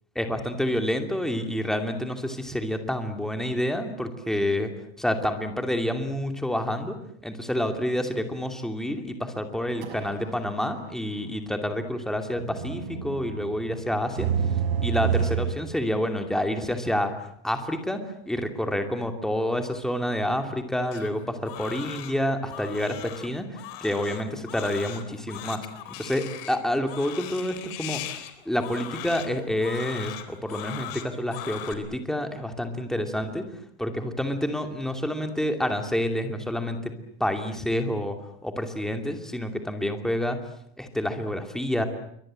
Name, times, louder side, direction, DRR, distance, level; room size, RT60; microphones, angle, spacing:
voice 1, 0.1-4.7 5.0-7.0 7.2-14.3 14.8-17.1 17.4-25.7 26.0-33.4 33.8-36.9 37.2-38.2 38.4-40.4 40.8-41.8, left 1 dB, ahead, 5 dB, 2.6 m, -28 dB
sound 1, 9.5-10.5 10.8-10.9 12.4-15.5, right 8 dB, 65° right, 5.8 m, -28 dB
Crying sobbing, 20.9-31.7, left 12 dB, 70° left, 4.0 m, -39 dB
28.0 x 24.0 x 7.6 m, 0.68 s
supercardioid pair, 160°, 31 cm